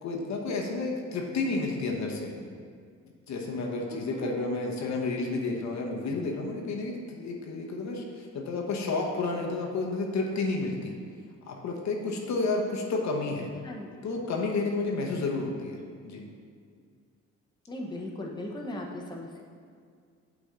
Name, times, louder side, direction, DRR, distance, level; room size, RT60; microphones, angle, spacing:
voice 1, 0.0-2.3 3.3-10.9 11.5-13.5 14.0-16.3, left 3 dB, 65° left, 0 dB, 1.0 m, -31 dB
voice 2, 3.9-4.3 13.6-14.1 17.7-19.4, left 1 dB, 15° left, -1 dB, 0.9 m, -38 dB
8.1 x 4.1 x 3.7 m, 2.1 s
cardioid pair, 90°, 30 cm